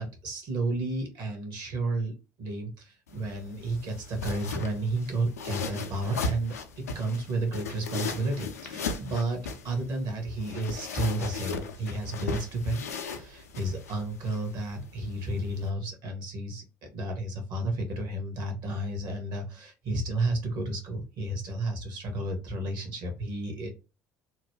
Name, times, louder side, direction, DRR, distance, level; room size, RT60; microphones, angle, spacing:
voice 1, 0.0-2.1 2.4-6.6 6.9-12.8 13.1-16.6 16.9-23.7, right 2 dB, 60° right, 3 dB, 1.2 m, -32 dB
sound 1, 3.1-15.7, left 4 dB, 85° left, 0.4 m, -38 dB
3.0 x 2.2 x 3.2 m, 0.30 s
hypercardioid pair, 60°, 8 cm